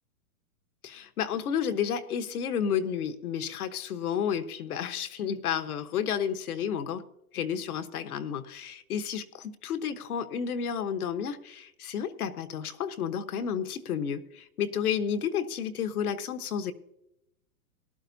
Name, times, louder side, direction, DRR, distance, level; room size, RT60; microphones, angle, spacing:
voice 1, 0.8-7.0 7.3-16.7, left 8 dB, 75° left, 9 dB, 1.2 m, -31 dB
18.5 x 11.5 x 2.7 m, 0.85 s
hypercardioid pair, 155°, 45 cm